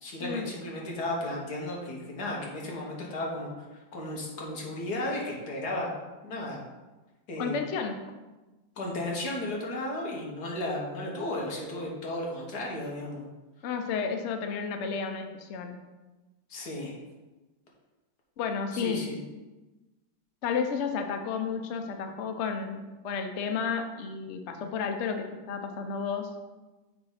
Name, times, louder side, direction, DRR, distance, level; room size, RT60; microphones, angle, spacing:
voice 1, 0.0-5.9 6.2-6.6 7.3-7.6 8.8-13.3 16.5-16.9 18.7-19.2, left 1 dB, 55° left, -2 dB, 1.9 m, -34 dB
voice 2, 7.4-8.0 13.6-15.8 18.4-19.1 20.4-26.3, left 6 dB, 80° left, 6 dB, 0.6 m, -32 dB
6.9 x 3.9 x 5.6 m, 1.2 s
omnidirectional pair, 2.1 m